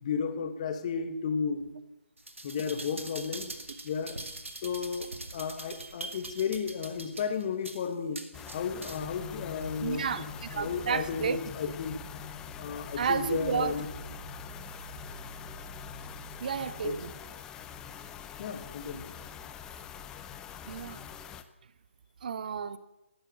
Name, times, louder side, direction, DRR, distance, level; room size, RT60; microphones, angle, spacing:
voice 1, 0.0-1.6 2.4-3.5 3.8-4.2 4.6-8.2 8.5-10.2 10.5-12.0 12.6-13.9 16.8-17.0 18.4-19.1, left 6 dB, 30° left, 9 dB, 1.4 m, -33 dB
sound 1, 2.2-9.2 9.6-9.7, right 2 dB, 75° right, 2.1 m, -43 dB
sound 2, 8.3-21.4, left 8 dB, 10° left, 0.5 m, -45 dB
sound 3, 8.9-16.9, left 1 dB, 10° right, 3.6 m, -46 dB
voice 2, 9.8-11.4 13.0-13.8 16.4-17.1 20.7-21.0 22.2-22.8, right 6 dB, 40° right, 15 dB, 0.7 m, -31 dB
15.5 x 11.5 x 7.7 m, 0.93 s
figure-of-eight pair, 145°, 7 cm